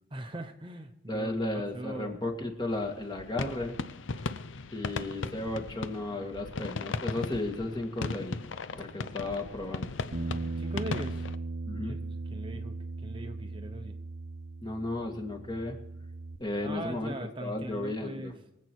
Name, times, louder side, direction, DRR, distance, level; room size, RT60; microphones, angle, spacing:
voice 1, 0.1-2.2 10.6-11.2 11.7-12.0 12.3-14.0 16.6-18.4, right 1 dB, 25° right, 5 dB, 0.9 m, -40 dB
voice 2, 1.1-3.7 4.7-8.4 8.7-9.9 11.7-12.0 14.6-15.8 16.4-17.1 17.4-18.3, left 2 dB, 25° left, 3 dB, 1.9 m, -34 dB
sound 1, 2.7-11.4, left 3 dB, 80° left, 0.7 m, -37 dB
Bass guitar, 10.1-16.4, right 3 dB, 75° right, 1.0 m, -38 dB
24.0 x 8.4 x 4.6 m, 0.90 s
head